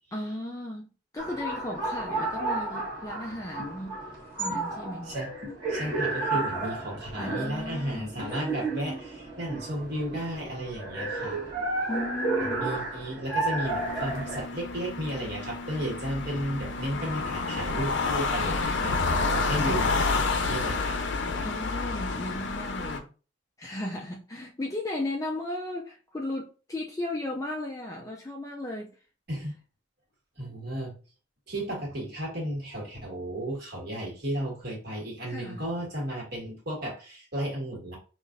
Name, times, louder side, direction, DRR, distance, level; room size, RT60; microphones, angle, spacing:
voice 1, 0.1-4.0 4.4-5.2 7.2-8.2 11.9-12.6 21.4-23.1 23.6-29.0 35.3-35.6, left 1 dB, 15° left, 0.4 m, -35 dB
sound 1, 1.2-14.4, right 2 dB, 25° right, 1.3 m, -32 dB
sound 2, 3.6-3.7 4.5-4.6 5.4-5.6 6.3-6.5 7.3-7.4 8.2-8.3, left 3 dB, 80° right, 1.2 m, -40 dB
voice 2, 5.7-11.4 12.4-21.0 29.3-29.6 30.4-30.9 31.5-38.0, right 1 dB, 50° right, 1.7 m, -34 dB
sound 3, 13.6-23.0, left 3 dB, 60° left, 0.6 m, -29 dB
5.6 x 2.5 x 2.5 m
head